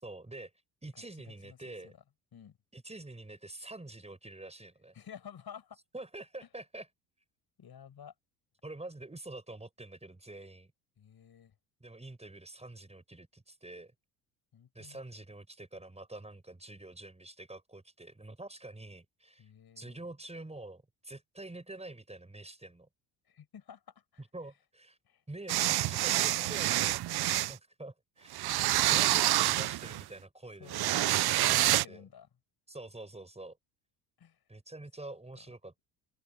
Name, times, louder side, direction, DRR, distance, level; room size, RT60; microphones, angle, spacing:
voice 1, 0.0-0.5 0.8-1.9 2.7-4.9 5.9-6.9 8.6-10.7 11.8-13.9 14.7-19.5 19.8-22.9 24.2-25.0 25.3-27.0 27.5-28.4 28.9-32.0 32.7-33.6 34.5-35.8, right 2 dB, 10° right, 5.7 m, -46 dB
voice 2, 0.9-2.0 2.3-2.6 4.9-5.8 7.6-8.1 11.0-11.5 14.5-15.0 19.4-20.1 23.3-24.2 25.0-25.2 26.1-26.9 28.5-28.7 30.6-32.3 34.2-34.4, left 8 dB, 45° left, 7.6 m, -52 dB
sound 1, 25.5-27.5 28.3-30.0 30.7-31.9, right 15 dB, 50° right, 0.8 m, -27 dB
hypercardioid pair, 60°, 50 cm